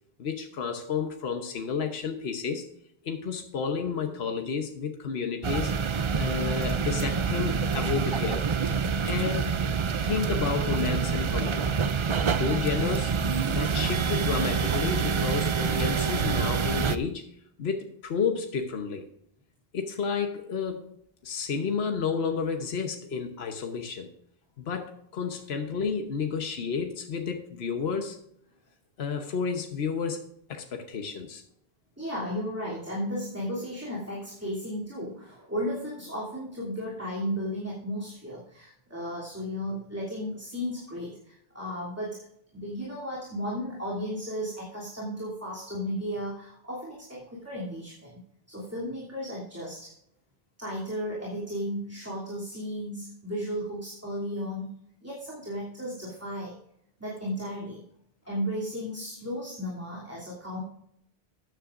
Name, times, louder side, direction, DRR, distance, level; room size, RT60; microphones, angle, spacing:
voice 1, 0.2-2.6 3.0-5.7 6.2-8.4 9.1-9.6 10.0-11.7 12.3-13.1 13.5-17.3 17.6-19.0 19.7-20.9 21.2-24.1 24.7-28.2 29.0-31.4, left 5 dB, 75° left, 4 dB, 1.3 m, -31 dB
sound 1, 5.4-17.0, right 6 dB, 45° right, 0.4 m, -27 dB
voice 2, 32.0-42.3 42.5-48.2 48.5-49.9 50.6-56.5 57.0-57.8 58.3-60.6, equal, 15° right, -6 dB, 3.0 m, -34 dB
14.0 x 9.8 x 2.5 m, 0.73 s
omnidirectional pair, 1.1 m